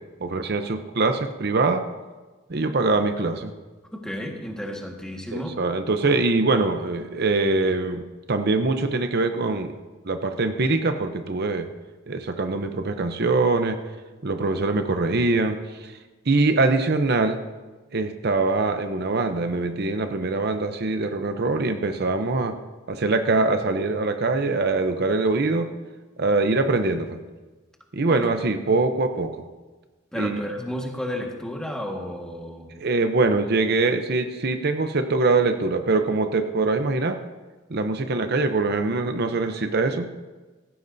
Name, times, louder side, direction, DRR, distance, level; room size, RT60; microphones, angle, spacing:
voice 1, 0.2-1.9 2.5-3.5 5.3-9.7 10.0-11.7 12.1-13.8 14.2-16.0 16.3-17.4 17.9-22.6 22.9-25.7 26.2-27.1 27.9-29.4 30.2-30.4 32.8-37.2 37.7-40.1, right 3 dB, 50° right, 7 dB, 0.7 m, -23 dB
voice 2, 3.9-5.6 28.1-28.3 30.1-32.8, equal, 5° left, 0 dB, 1.6 m, -32 dB
17.0 x 15.5 x 2.7 m, 1.2 s
head